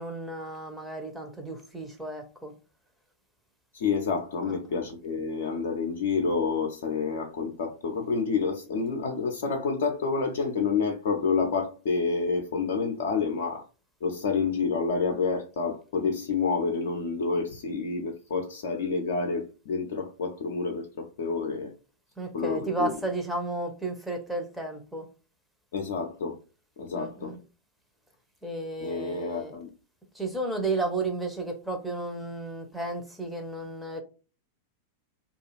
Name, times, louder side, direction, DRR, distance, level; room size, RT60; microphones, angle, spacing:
voice 1, 0.0-2.5 4.4-4.8 22.2-25.1 26.9-27.4 28.4-29.6 30.1-34.0, right 2 dB, 5° right, 0.7 m, -33 dB
voice 2, 3.7-13.7 14.0-21.7 22.3-22.9 25.7-26.4 26.8-27.3 28.8-29.7, left 4 dB, 55° left, 0.5 m, -28 dB
2.4 x 2.3 x 3.1 m
figure-of-eight pair, 90°, 0 cm